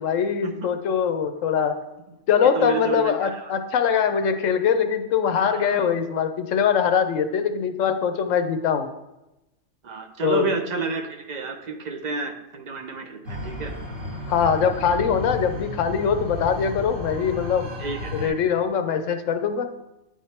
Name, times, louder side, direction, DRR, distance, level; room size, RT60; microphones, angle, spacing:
voice 1, 0.0-1.8 2.3-8.9 10.2-10.5 14.3-17.7 18.1-19.7, left 7 dB, 80° left, 8 dB, 1.0 m, -22 dB
voice 2, 2.6-3.5 5.3-5.8 9.8-13.7 17.8-18.3, right 4 dB, 50° right, 6 dB, 0.5 m, -31 dB
sound 1, 13.2-18.3, left 2 dB, 80° right, 2.1 m, -33 dB
9.0 x 3.6 x 4.3 m, 0.95 s
omnidirectional pair, 1.3 m